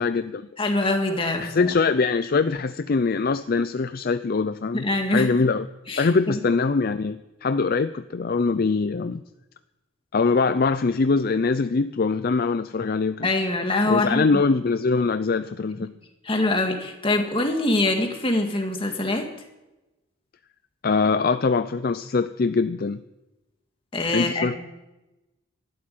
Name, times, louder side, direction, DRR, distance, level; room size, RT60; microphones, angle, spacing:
voice 1, 0.0-0.4 1.4-5.7 6.0-9.2 10.1-13.3 13.9-15.9 20.8-23.0 24.1-24.6, left 4 dB, 45° left, 12 dB, 0.5 m, -23 dB
voice 2, 0.6-1.7 4.7-5.3 5.9-6.1 13.2-14.4 15.8-15.9 16.2-19.3 23.9-24.6, left 2 dB, 25° left, 3 dB, 2.0 m, -24 dB
13.0 x 12.0 x 9.4 m, 1.0 s
head